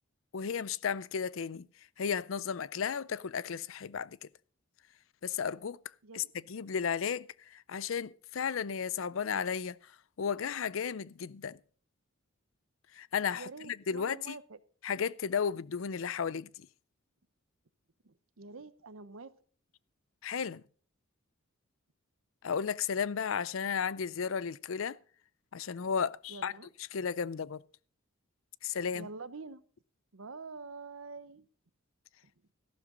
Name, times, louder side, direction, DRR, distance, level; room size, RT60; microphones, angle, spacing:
voice 1, 0.3-1.7 2.0-4.3 5.2-5.8 6.1-9.9 10.2-11.6 12.9-14.4 14.8-16.7 20.2-20.6 22.4-25.0 25.5-26.5 26.9-27.6 28.6-29.1, left 6 dB, 70° left, 0.5 m, -34 dB
voice 2, 13.3-14.6 18.0-19.3 26.3-26.7 28.9-29.6 30.1-31.5, right 4 dB, 75° right, 0.9 m, -46 dB
14.0 x 12.0 x 3.8 m
head